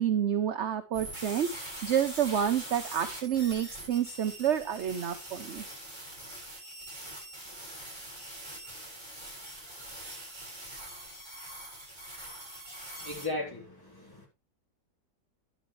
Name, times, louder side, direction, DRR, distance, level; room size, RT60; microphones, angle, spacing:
voice 1, 0.0-5.6, right 9 dB, 55° right, 0.8 m, -29 dB
sound 1, 0.9-13.3, right 1 dB, 25° right, 7.4 m, -43 dB
voice 2, 13.0-14.3, left 2 dB, 10° left, 3.8 m, -37 dB
11.0 x 10.5 x 3.2 m
omnidirectional pair, 2.0 m